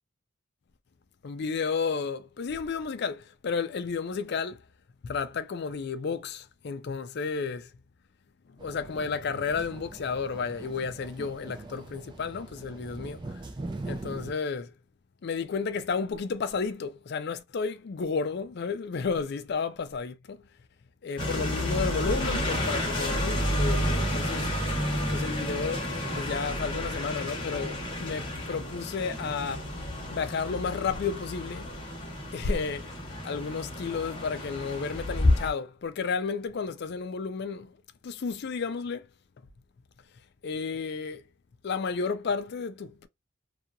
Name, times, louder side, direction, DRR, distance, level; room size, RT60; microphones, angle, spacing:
voice 1, 1.2-4.6 5.0-7.7 8.6-13.4 13.9-14.7 15.2-20.4 21.0-24.5 25.1-25.9 26.1-29.7 30.1-31.7 32.3-33.0 33.2-37.8 38.0-39.1 40.4-41.2 41.6-43.1, left 5 dB, 55° left, 0.4 m, -32 dB
sound 1, 8.6-14.3, right 2 dB, 20° right, 0.4 m, -41 dB
sound 2, 21.2-35.5, left 1 dB, 25° left, 0.9 m, -30 dB
2.8 x 2.3 x 2.5 m
head